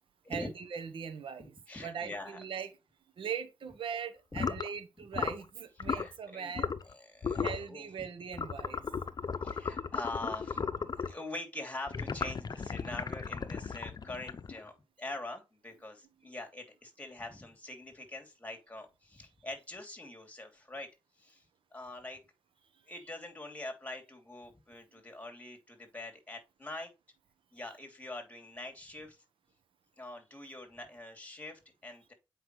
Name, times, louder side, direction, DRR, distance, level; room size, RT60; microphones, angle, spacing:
voice 1, 0.3-1.5 1.8-2.7 3.2-6.7 7.4-8.8, right 7 dB, 75° right, 1.0 m, -40 dB
voice 2, 1.7-2.4 4.3-4.5 5.9-6.5 6.8-8.1 9.4-20.9 21.2-21.5 21.7-22.2 22.8-26.9 27.5-29.2 30.0-32.1, left 2 dB, 15° left, 2.9 m, -44 dB
sound 1, 4.3-4.7 5.1-5.4 5.8-6.1 6.5-6.9 7.2-7.6 8.3-11.2 11.9-14.7, left 5 dB, 50° left, 0.7 m, -35 dB
7.8 x 5.1 x 3.2 m
cardioid pair, 55°, 9 cm